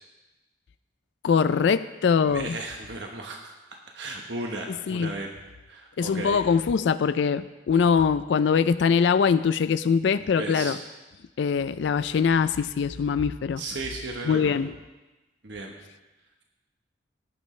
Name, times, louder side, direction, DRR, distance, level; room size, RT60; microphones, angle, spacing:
voice 1, 1.2-2.6 4.9-5.1 6.0-10.8 11.4-13.6 14.2-14.7, left 6 dB, 75° left, 13 dB, 0.3 m, -23 dB
voice 2, 2.2-3.5 3.9-5.3 5.7-6.4 10.2-10.8 13.6-14.6 15.4-15.7, right 2 dB, 75° right, 1 dB, 1.1 m, -35 dB
17.0 x 10.5 x 3.2 m, 1.1 s
head